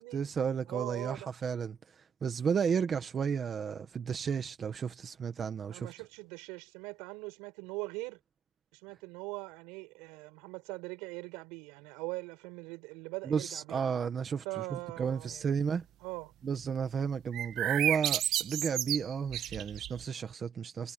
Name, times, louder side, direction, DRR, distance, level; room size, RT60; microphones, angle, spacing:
voice 1, 0.1-5.9 13.2-15.8 16.4-20.9, right 6 dB, 25° right, 1.1 m, -33 dB
voice 2, 0.7-1.3 5.7-8.2 8.7-13.8 14.4-15.5 16.0-16.3, right 25 dB, 80° right, 5.8 m, -41 dB
sound 1, 17.3-20.0, right 12 dB, 45° right, 1.3 m, -32 dB
cardioid pair, 175°, 0 cm